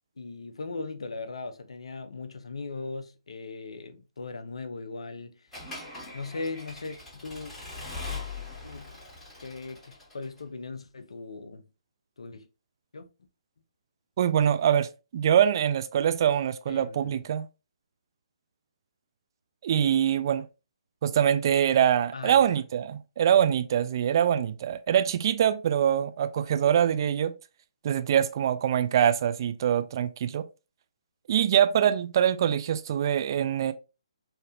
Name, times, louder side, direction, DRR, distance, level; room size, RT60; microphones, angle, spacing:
voice 1, 0.2-5.5 6.1-7.5 8.6-8.9 9.4-11.7 12.2-12.5 12.9-13.1 16.7-17.2 22.1-22.6, left 3 dB, 65° left, 0.5 m, -39 dB
Accelerating revving vroom / Mechanisms, 5.5-10.4, left 3 dB, 5° left, 1.5 m, -41 dB
voice 2, 14.2-17.4 19.6-20.5 21.0-27.3 27.8-30.5 31.3-33.7, right 9 dB, 40° right, 0.3 m, -24 dB
3.3 x 2.7 x 2.5 m
figure-of-eight pair, 140°, 3 cm